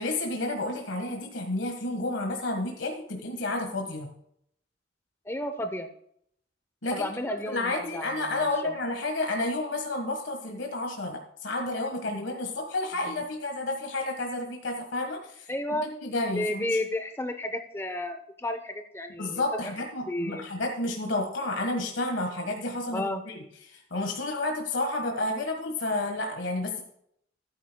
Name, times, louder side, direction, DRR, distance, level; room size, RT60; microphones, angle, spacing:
voice 1, 0.0-4.1 6.8-15.5 15.8-16.6 19.2-26.8, left 2 dB, 75° left, 2 dB, 1.5 m, -31 dB
voice 2, 5.3-5.9 6.9-8.7 15.5-15.9 16.3-19.4 20.1-20.5 22.9-23.2, left 1 dB, 15° left, 7 dB, 0.7 m, -32 dB
15.0 x 9.5 x 2.3 m, 0.70 s
head